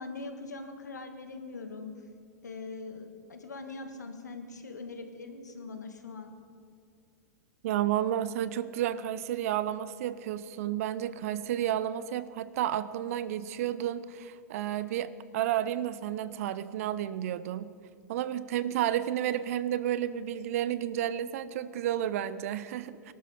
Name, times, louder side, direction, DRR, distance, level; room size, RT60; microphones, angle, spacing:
voice 1, 0.0-1.9 2.4-6.3, left 3 dB, 85° left, 6 dB, 1.7 m, -42 dB
voice 2, 7.6-17.7 18.1-23.1, right 11 dB, 55° right, 16 dB, 0.7 m, -31 dB
19.5 x 12.5 x 5.1 m, 2.3 s
hypercardioid pair, 105°, 9 cm